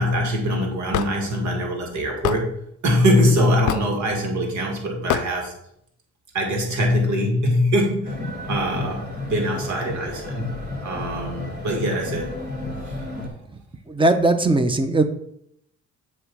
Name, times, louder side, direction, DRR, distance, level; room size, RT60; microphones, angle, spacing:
voice 1, 0.0-2.6 2.8-5.5 6.3-8.2 8.4-10.6 10.8-12.3, equal, 70° right, 1 dB, 2.1 m, -22 dB
Hammer / Wood, 0.9-1.1 2.2-2.4 3.7-4.0 5.1-5.3, left 11 dB, 80° left, 0.5 m, -23 dB
sound 1, 8.0-13.3, left 2 dB, 35° right, 2.8 m, -32 dB
voice 2, 13.9-15.0, right 2 dB, 15° right, 9 dB, 0.8 m, -19 dB
7.7 x 3.2 x 6.2 m, 0.72 s
cardioid pair, 90°, 30 cm